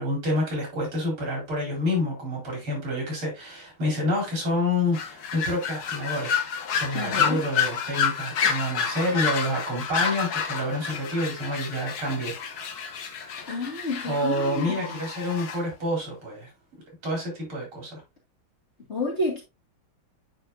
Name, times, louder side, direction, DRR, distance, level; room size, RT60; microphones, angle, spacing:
voice 1, 0.0-6.3 6.8-12.8 14.0-16.5 17.0-18.0, left 1 dB, 70° right, 5.0 m, -28 dB
sound 1, 4.9-15.6, left 7 dB, 55° left, 1.3 m, -29 dB
voice 2, 6.9-7.4 13.5-15.0 18.9-19.4, left 2 dB, 30° left, 2.4 m, -30 dB
9.1 x 4.8 x 2.6 m
omnidirectional pair, 2.4 m